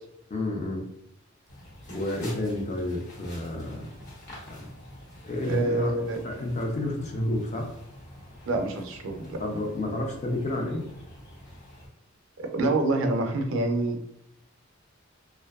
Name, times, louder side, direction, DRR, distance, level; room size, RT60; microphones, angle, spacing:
voice 1, 0.3-0.8 1.9-3.9 4.5-4.7 5.2-5.9 6.2-7.7 9.4-10.9, left 1 dB, 35° left, 2 dB, 0.5 m, -30 dB
sound 1, 1.5-11.9, left 1 dB, 60° left, 1.0 m, -47 dB
voice 2, 5.5-6.2 8.5-9.4 12.4-14.0, right 2 dB, 70° right, 4 dB, 0.4 m, -26 dB
2.5 x 2.2 x 2.3 m, 0.76 s
head